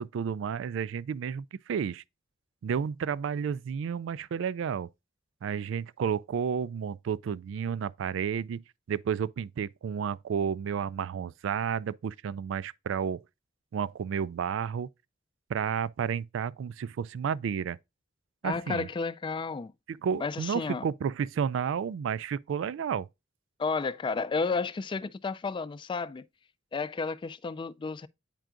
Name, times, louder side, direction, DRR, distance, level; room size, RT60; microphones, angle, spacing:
voice 1, 0.0-2.0 2.6-4.9 5.4-8.6 8.9-13.2 13.7-14.9 15.5-17.8 18.4-18.9 19.9-23.1, right 7 dB, 70° right, 0.3 m, -31 dB
voice 2, 18.4-19.7 20.2-20.8 23.6-26.2 26.7-28.1, left 4 dB, 25° left, 0.3 m, -32 dB
9.0 x 4.5 x 2.5 m
head